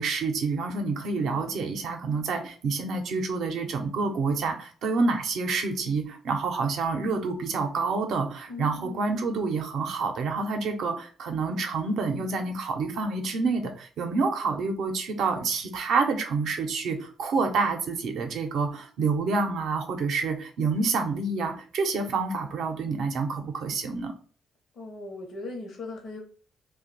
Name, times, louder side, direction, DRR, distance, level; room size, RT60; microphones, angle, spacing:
voice 1, 0.0-24.1, right 4 dB, 75° right, 5 dB, 0.6 m, -28 dB
voice 2, 1.2-1.5 8.5-9.2 24.8-26.2, left 2 dB, 60° left, 1 dB, 0.8 m, -39 dB
2.5 x 2.2 x 3.9 m, 0.42 s
cardioid pair, 90°, 0 cm